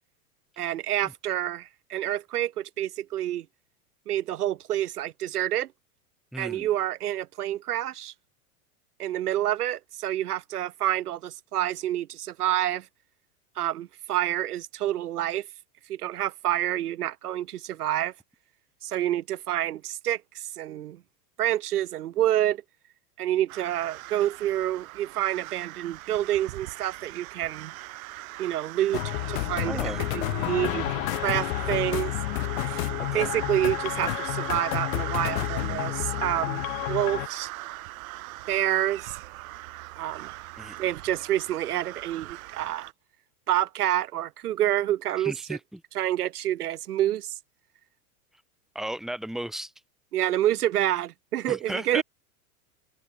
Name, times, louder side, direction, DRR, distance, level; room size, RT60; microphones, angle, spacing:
voice 1, 0.6-3.4 4.1-5.7 6.4-8.1 9.0-12.9 13.6-15.5 15.9-18.1 18.8-21.0 21.4-22.6 23.2-27.7 28.4-32.1 32.7-32.9 33.1-37.5 38.5-39.2 39.9-40.4 40.8-42.9 43.5-45.3 45.9-47.4 50.1-52.0, right 12 dB, 85° right, 1.3 m, -28 dB
voice 2, 6.3-6.7 29.7-30.1 33.1-33.3 40.6-40.8 45.2-45.8 48.7-49.7 51.5-52.0, right 1 dB, ahead, 1.3 m, -35 dB
sound 1, 23.5-42.9, right 19 dB, 65° right, 0.6 m, -39 dB
sound 2, 28.9-37.3, left 21 dB, 60° left, 0.7 m, -30 dB
hypercardioid pair, 110°, 44 cm